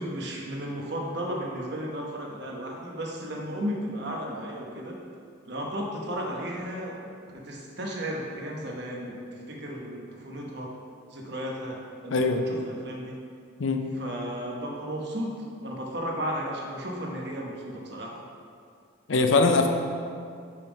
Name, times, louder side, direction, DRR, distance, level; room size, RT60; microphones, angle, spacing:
voice 1, 0.0-5.0 5.5-10.7 11.1-13.2 13.9-15.3 15.6-18.2, equal, 55° right, -1 dB, 1.0 m, -34 dB
voice 2, 12.1-12.4 13.6-13.8 19.1-19.7, left 3 dB, 70° left, 5 dB, 0.6 m, -21 dB
5.6 x 5.2 x 5.1 m, 2.3 s
head